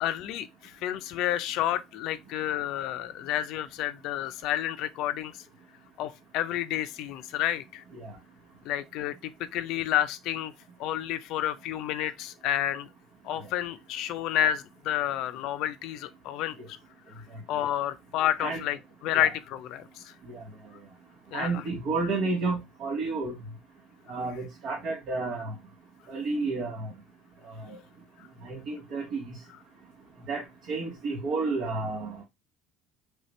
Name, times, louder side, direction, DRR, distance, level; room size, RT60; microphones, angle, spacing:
voice 1, 0.0-5.4 6.0-7.8 8.6-10.5 10.8-12.9 13.2-16.8 17.2-17.3 17.5-20.1 21.3-21.6 24.1-24.2, left 12 dB, 70° left, 0.4 m, -30 dB
voice 2, 21.3-23.4 24.1-25.5 26.1-26.9 27.7-27.8 28.4-29.2 30.3-30.4 30.7-32.2, right 3 dB, 65° right, 1.1 m, -31 dB
3.3 x 2.8 x 3.1 m
supercardioid pair, 85°, 0 cm